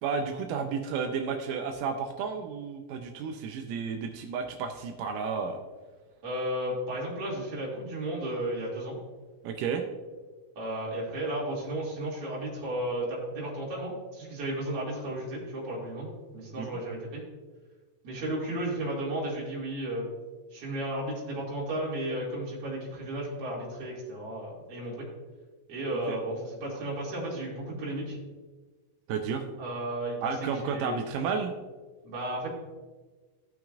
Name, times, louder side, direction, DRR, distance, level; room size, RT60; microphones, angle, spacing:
voice 1, 0.0-5.6 9.4-9.8 16.6-16.7 26.1-26.2 29.1-29.4 30.2-31.5, right 6 dB, 85° right, 4 dB, 2.2 m, -32 dB
voice 2, 6.2-9.0 10.6-17.2 18.0-20.1 20.5-25.1 25.7-28.2 29.6-31.0 32.0-32.5, right 1 dB, 45° right, -5 dB, 3.2 m, -34 dB
15.5 x 6.0 x 2.5 m, 1.3 s
omnidirectional pair, 3.8 m